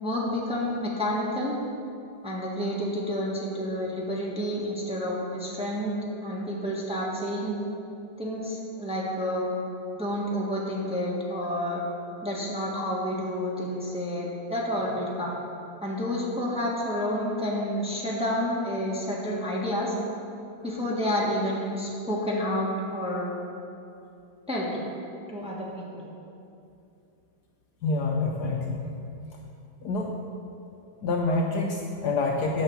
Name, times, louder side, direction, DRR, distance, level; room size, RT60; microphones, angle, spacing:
voice 1, 0.0-1.6 2.2-5.9 6.2-7.6 8.2-9.5 9.9-11.8 12.2-15.4 15.8-19.9 20.6-23.3 24.5-24.8 25.3-26.1, equal, 5° right, -5 dB, 1.3 m, -29 dB
voice 2, 27.8-28.8 29.8-30.2 31.0-32.6, left 3 dB, 65° left, 1 dB, 1.1 m, -27 dB
9.2 x 5.8 x 7.2 m, 2.6 s
omnidirectional pair, 2.1 m